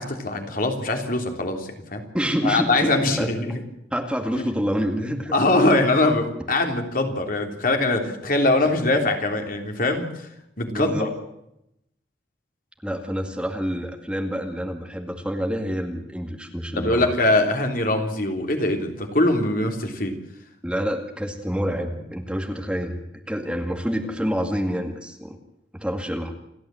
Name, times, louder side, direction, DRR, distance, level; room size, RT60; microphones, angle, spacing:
voice 1, 0.0-2.0 2.4-3.5 4.4-4.7 5.3-10.1 10.6-11.1 16.8-20.1, left 2 dB, 50° left, 3 dB, 3.5 m, -22 dB
voice 2, 2.1-2.9 3.2-3.3 3.9-5.3 10.7-11.1 12.8-17.1 20.6-25.4 25.7-26.3, equal, 5° right, 4 dB, 2.1 m, -27 dB
29.0 x 12.5 x 7.7 m, 0.82 s
head